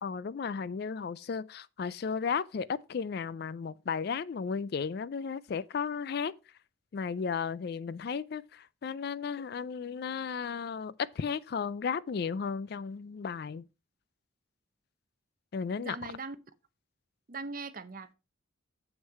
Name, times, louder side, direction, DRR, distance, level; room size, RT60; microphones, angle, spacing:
voice 1, 0.0-6.3 6.9-13.6 15.5-16.0, left 6 dB, 50° left, 0.3 m, -34 dB
voice 2, 15.8-16.4 17.3-18.1, right 3 dB, 45° right, 0.7 m, -40 dB
7.4 x 6.3 x 4.6 m
head